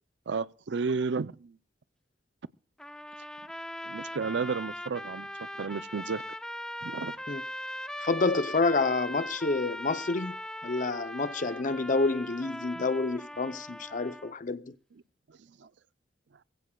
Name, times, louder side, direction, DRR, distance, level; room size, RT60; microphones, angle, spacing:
voice 1, 0.3-1.6 3.8-6.2 6.8-7.2 15.3-15.7, right 5 dB, 80° right, 0.5 m, -33 dB
sound 1, 2.8-14.3, left 1 dB, 5° left, 0.5 m, -40 dB
voice 2, 8.0-14.7, left 3 dB, 45° left, 0.7 m, -29 dB
21.0 x 15.5 x 2.3 m
head